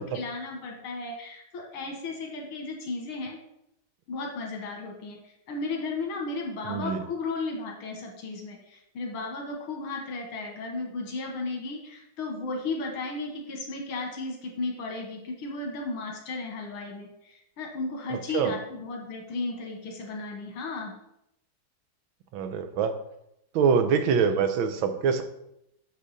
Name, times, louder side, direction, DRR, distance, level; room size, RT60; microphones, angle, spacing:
voice 1, 0.0-3.4 4.1-20.9, left 3 dB, 85° left, 1 dB, 2.2 m, -35 dB
voice 2, 6.6-7.0 18.1-18.5 22.3-23.0 23.5-25.2, right 6 dB, 75° right, 8 dB, 1.5 m, -25 dB
7.3 x 6.6 x 4.1 m, 0.80 s
omnidirectional pair, 2.3 m